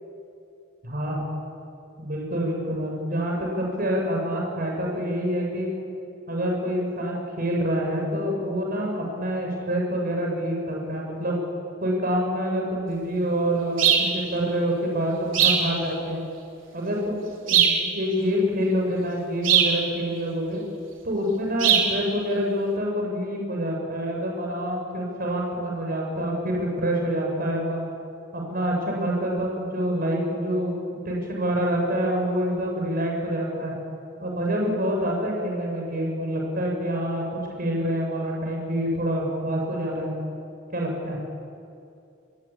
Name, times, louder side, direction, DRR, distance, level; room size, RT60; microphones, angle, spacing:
voice 1, 2.0-5.7 6.3-11.4 11.8-16.2 16.7-20.6 21.0-27.9 28.3-30.8 31.1-33.7 34.2-37.2 37.6-40.1 40.7-41.2, equal, 50° right, 0 dB, 7.2 m, -26 dB
sound 1, 13.8-14.1 15.3-15.7 17.5-17.8 19.4-19.8 21.6-21.9, right 8 dB, 80° right, 4.4 m, -19 dB
28.5 x 22.0 x 8.8 m, 2.5 s
head